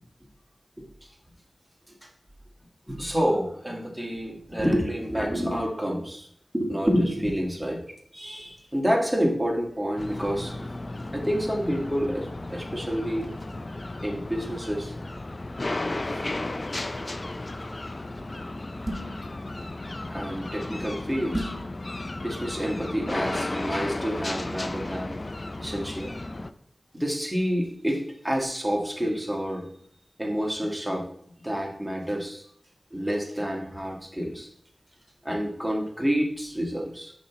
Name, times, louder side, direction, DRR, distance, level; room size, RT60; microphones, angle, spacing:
voice 1, 2.9-6.3 6.5-7.8 8.1-10.5 11.1-13.3 14.0-14.9 16.0-16.2 20.1-21.5 22.2-25.1 25.6-26.1 26.9-29.7 30.2-31.0 31.4-32.4 32.9-34.5 35.2-37.1, equal, 5° right, 0 dB, 1.6 m, -28 dB
sound 1, 10.0-26.5, left 2 dB, 40° left, 0.4 m, -34 dB
sound 2, 18.9-19.3 21.3-21.7, right 1 dB, 35° right, 1.3 m, -31 dB
7.5 x 5.3 x 3.0 m, 0.65 s
wide cardioid pair, 60°, 0 cm